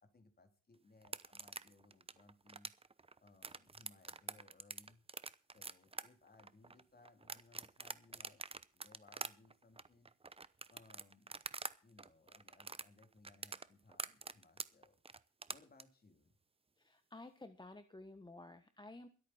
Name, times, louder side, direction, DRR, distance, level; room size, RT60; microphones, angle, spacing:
voice 1, 0.0-2.7 3.2-5.0 5.5-8.4 8.7-10.1 10.7-11.4 11.8-15.0 15.5-16.3, left 3 dB, 30° left, 6 dB, 3.2 m, -65 dB
sound 1, 1.0-11.7 12.0-15.8, right 4 dB, 20° right, 0.8 m, -46 dB
voice 2, 16.8-19.1, left 2 dB, 15° left, 9 dB, 1.3 m, -53 dB
23.0 x 8.6 x 4.3 m, 0.39 s
cardioid pair, 90°, 30 cm